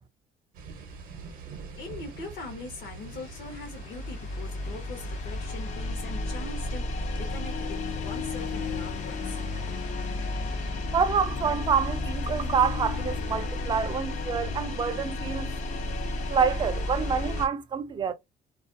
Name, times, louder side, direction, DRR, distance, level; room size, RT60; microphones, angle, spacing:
sound 1, 0.5-17.5, right 5 dB, 60° right, 0.7 m, -48 dB
sound 2, 0.9-7.0, right 1 dB, 80° left, 1.1 m, -45 dB
voice 1, 1.8-9.4, left 3 dB, 65° left, 0.8 m, -42 dB
sound 3, 2.5-17.5, left 2 dB, 45° left, 0.4 m, -33 dB
voice 2, 10.9-15.5 16.3-18.1, right 6 dB, 30° right, 0.4 m, -27 dB
2.4 x 2.2 x 2.5 m
cardioid pair, 145°, 17 cm